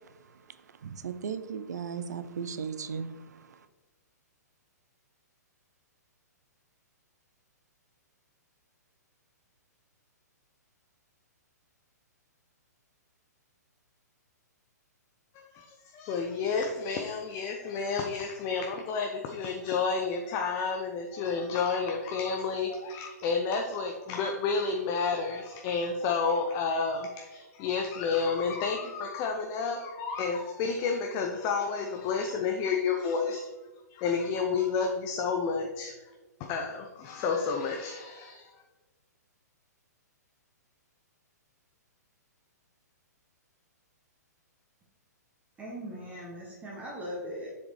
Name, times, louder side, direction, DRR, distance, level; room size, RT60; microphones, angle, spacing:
voice 1, 0.8-3.1, right 6 dB, 70° right, 13 dB, 0.5 m, -36 dB
voice 2, 15.4-33.5 33.9-36.0 36.4-38.5, left 5 dB, 35° left, 3 dB, 0.6 m, -30 dB
voice 3, 45.6-47.5, equal, 15° right, -4 dB, 1.2 m, -39 dB
6.8 x 5.0 x 3.2 m, 1.2 s
figure-of-eight pair, 120°, 9 cm